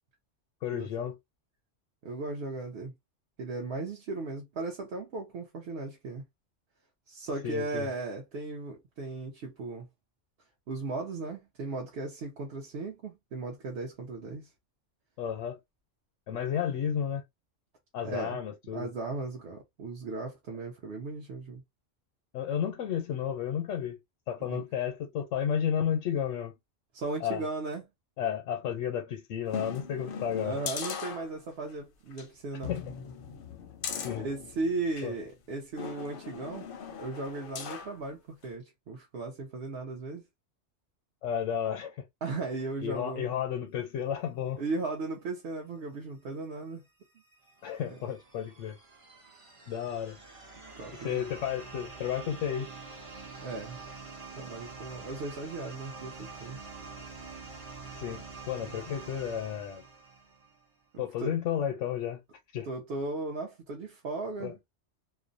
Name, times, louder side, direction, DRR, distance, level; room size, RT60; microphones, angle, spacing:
voice 1, 0.6-1.2 7.4-7.9 15.2-15.6 16.3-17.2 17.9-18.9 22.3-24.0 24.3-26.5 27.2-27.5 28.2-30.5 32.7-32.8 34.0-34.3 35.0-35.1 41.2-42.0 42.8-44.6 47.6-48.8 49.7-50.2 51.0-52.7 58.0-59.8 61.0-62.2 62.5-62.7 64.4-64.5, left 9 dB, 90° left, 0.9 m, -32 dB
voice 2, 2.0-2.9 3.4-6.2 7.1-9.9 10.7-14.5 18.0-18.4 18.7-21.6 24.5-24.6 26.9-27.8 30.4-32.7 34.2-36.7 37.0-40.2 42.2-43.3 44.6-46.8 47.9-48.0 50.8-51.3 53.4-53.8 54.4-56.6 60.9-61.3 62.7-64.6, right 3 dB, 65° right, 0.8 m, -36 dB
sound 1, 29.5-31.7 32.1-32.3 32.6-35.1 35.8-38.0 38.4-38.5, left 6 dB, 60° left, 0.6 m, -39 dB
sound 2, 46.9-60.7, right 4 dB, 40° right, 0.5 m, -46 dB
2.5 x 2.0 x 2.5 m
omnidirectional pair, 1.2 m